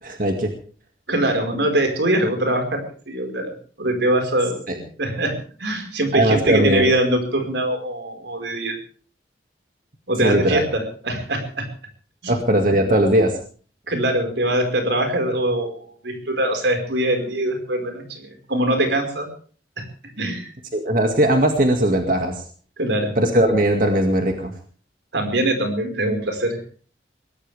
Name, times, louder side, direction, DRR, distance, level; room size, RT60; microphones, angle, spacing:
voice 1, 0.0-0.5 4.7-4.8 6.1-6.9 10.2-10.6 12.3-13.3 20.7-22.4 23.2-24.5, right 1 dB, 50° right, 3 dB, 2.2 m, -19 dB
voice 2, 1.1-8.8 10.1-11.7 12.2-12.3 13.9-19.3 19.8-19.9 20.2-20.5 22.8-23.1 25.1-26.7, right 1 dB, 85° right, 5 dB, 5.1 m, -23 dB
22.5 x 17.5 x 3.5 m, 0.42 s
head